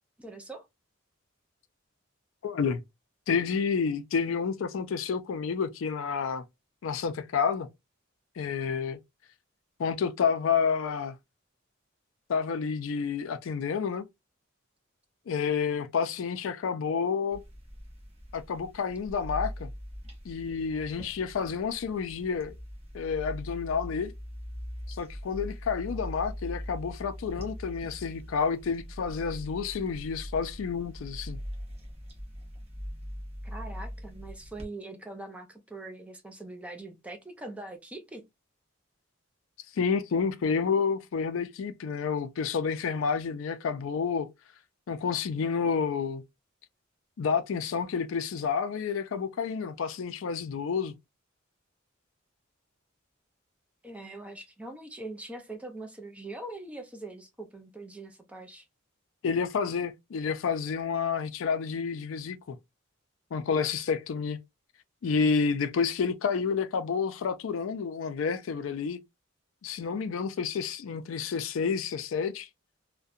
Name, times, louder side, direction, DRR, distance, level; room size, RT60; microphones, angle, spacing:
voice 1, 0.2-0.7 33.4-38.2 53.8-58.7, right 2 dB, 5° right, 0.4 m, -42 dB
voice 2, 2.4-2.8 3.3-6.4 6.8-7.7 8.4-9.0 9.8-11.2 12.3-14.1 15.3-17.4 18.3-19.7 20.3-22.5 22.9-24.1 24.9-31.4 39.8-44.3 44.9-46.2 47.2-50.9 59.2-62.6 63.3-64.4 65.0-69.0 69.6-72.5, left 6 dB, 75° left, 0.4 m, -29 dB
sound 1, 17.3-34.7, equal, 30° right, 0.8 m, -41 dB
2.6 x 2.1 x 2.3 m
head